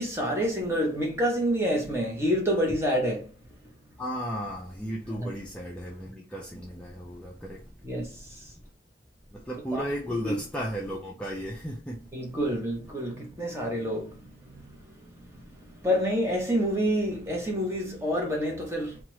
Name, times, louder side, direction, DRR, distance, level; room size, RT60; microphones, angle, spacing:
voice 1, 0.0-3.3 5.2-5.3 7.8-8.5 9.7-10.4 12.1-14.8 15.3-19.0, equal, 15° right, 0.7 m, -28 dB
voice 2, 4.0-7.7 9.3-12.1, equal, 5° left, 0.3 m, -35 dB
2.9 x 2.3 x 3.0 m
head